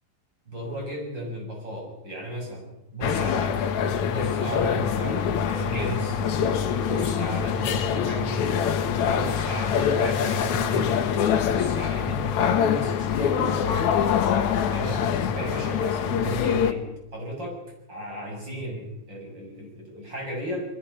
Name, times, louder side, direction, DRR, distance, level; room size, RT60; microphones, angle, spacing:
voice 1, 0.5-6.2 6.8-8.6 9.1-11.0 11.4-13.6 13.9-14.4 14.7-16.8 17.1-17.6 17.9-20.7, equal, 25° right, -1 dB, 8.0 m, -34 dB
sound 1, 3.0-16.7, left 8 dB, 65° left, 1.9 m, -24 dB
29.0 x 21.0 x 5.7 m, 0.91 s
omnidirectional pair, 5.0 m